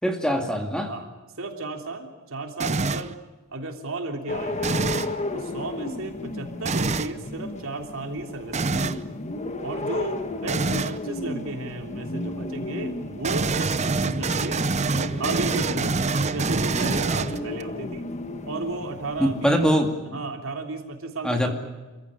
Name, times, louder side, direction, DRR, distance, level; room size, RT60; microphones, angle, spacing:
voice 1, 0.0-0.9 19.2-19.9 21.2-21.5, equal, 5° left, 3 dB, 2.4 m, -22 dB
voice 2, 1.4-3.2 3.5-4.8 5.3-9.0 9.6-14.6 15.2-18.0 18.4-19.7 20.1-21.5, right 2 dB, 65° right, 3 dB, 3.3 m, -34 dB
sound 1, 2.6-3.1 4.6-5.2 6.6-7.1 8.5-9.0 10.5-11.0 13.2-17.6, right 3 dB, 30° right, 0.7 m, -25 dB
sound 2, 4.3-19.8, left 2 dB, 30° left, 1.5 m, -34 dB
27.5 x 15.5 x 9.9 m, 1.2 s
head